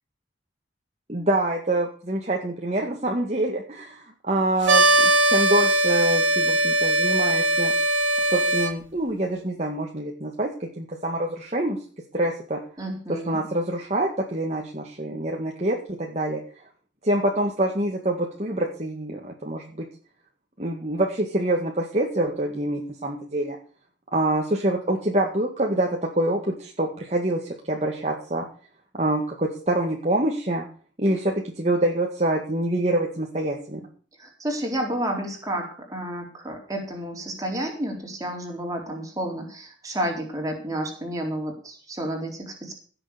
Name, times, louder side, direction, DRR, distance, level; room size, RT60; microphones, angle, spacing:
voice 1, 1.1-7.7 8.3-11.8 12.1-12.6 13.1-16.4 17.0-19.9 20.6-23.6 24.1-25.9 26.2-28.5 28.9-30.6 31.0-33.8, right 1 dB, 35° right, 1 dB, 1.9 m, -26 dB
sound 1, 4.6-8.7, right 1 dB, 70° right, 2.8 m, -20 dB
voice 2, 12.8-13.4 34.2-42.7, right 1 dB, 20° right, 1 dB, 3.8 m, -31 dB
16.5 x 7.0 x 6.8 m, 0.42 s
head